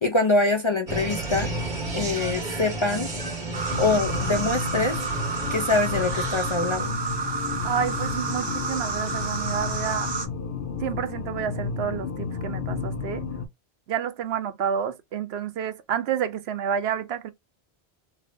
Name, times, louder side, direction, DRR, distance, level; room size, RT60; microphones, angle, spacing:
voice 1, 0.0-1.5 1.9-3.1 3.8-5.0 5.5-7.0, left 2 dB, 40° left, 0.4 m, -24 dB
sound 1, 0.9-6.6, right 2 dB, 50° right, 1.3 m, -32 dB
sound 2, 3.5-10.3, right 4 dB, 35° right, 0.5 m, -30 dB
sound 3, 3.7-13.5, left 5 dB, 65° left, 0.8 m, -32 dB
voice 2, 7.6-10.1 10.8-13.2 13.9-17.3, right 8 dB, 80° right, 0.9 m, -29 dB
3.3 x 2.8 x 2.5 m
omnidirectional pair, 1.1 m